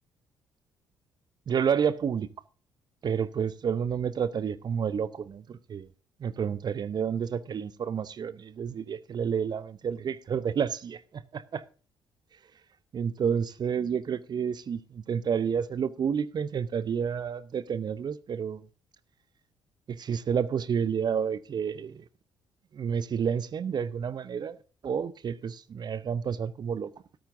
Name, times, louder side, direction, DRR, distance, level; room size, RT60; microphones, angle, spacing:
voice 1, 1.5-2.3 3.0-5.9 6.2-11.6 12.9-18.6 19.9-22.0 22.7-24.6 24.8-26.9, right 7 dB, 40° right, 0.7 m, -30 dB
13.0 x 13.0 x 2.6 m
figure-of-eight pair, 45°, 10 cm